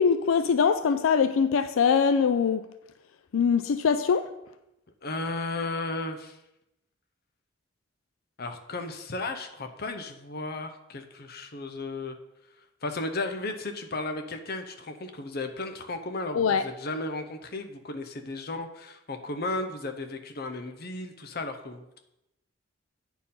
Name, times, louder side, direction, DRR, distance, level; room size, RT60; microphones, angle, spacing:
voice 1, 0.0-2.7 3.3-4.3 16.3-16.7, left 6 dB, 85° left, 10 dB, 0.4 m, -23 dB
voice 2, 5.0-6.4 8.4-12.2 12.8-22.1, left 2 dB, 50° left, 7 dB, 0.8 m, -34 dB
9.2 x 4.5 x 5.4 m, 0.88 s
head